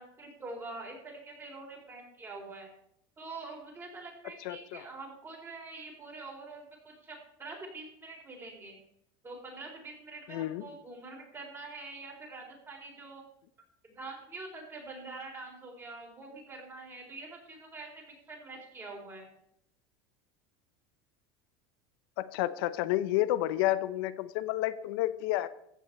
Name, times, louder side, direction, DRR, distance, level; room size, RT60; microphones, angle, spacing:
voice 1, 0.0-2.7 3.2-8.8 9.2-13.2 13.9-19.3, right 3 dB, 20° right, 0 dB, 4.3 m, -45 dB
voice 2, 4.4-4.8 10.3-10.6 22.2-25.5, left 14 dB, 75° left, 14 dB, 0.8 m, -30 dB
14.5 x 5.6 x 8.6 m, 0.73 s
supercardioid pair, 135°, 12 cm